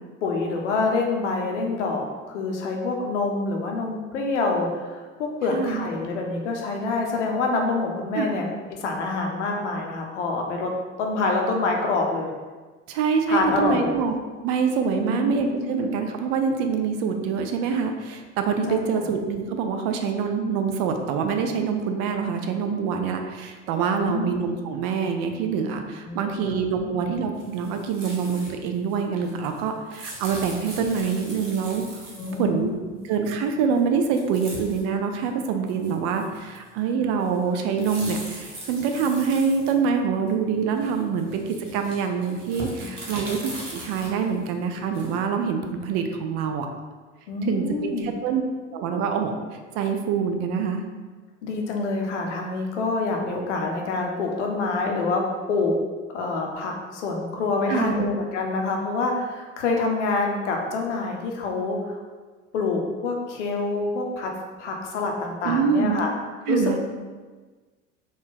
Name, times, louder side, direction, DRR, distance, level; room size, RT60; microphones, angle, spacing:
voice 1, 0.2-10.7 11.0-12.3 13.3-14.0 15.0-15.8 18.7-19.0 23.9-24.4 26.0-27.0 32.2-32.8 42.8-42.9 47.3-48.1 51.4-55.7 56.1-62.0 62.5-64.3 64.6-66.1 66.5-66.8, left 3 dB, 70° left, 1 dB, 0.7 m, -26 dB
voice 2, 5.5-5.9 8.1-8.4 12.9-32.0 32.4-32.8 33.1-46.7 47.5-48.4 48.7-50.8 57.7-58.0 65.4-66.0 66.5-66.8, right 6 dB, 45° right, 5 dB, 0.4 m, -25 dB
sound 1, 27.4-28.5 28.8-32.5 33.8-33.9 34.1-34.8 35.2-35.3 35.7-36.8 37.2-40.3 40.8-45.3, right 1 dB, 80° right, 0.8 m, -40 dB
3.9 x 2.3 x 3.8 m, 1.4 s
figure-of-eight pair, 65°, 37 cm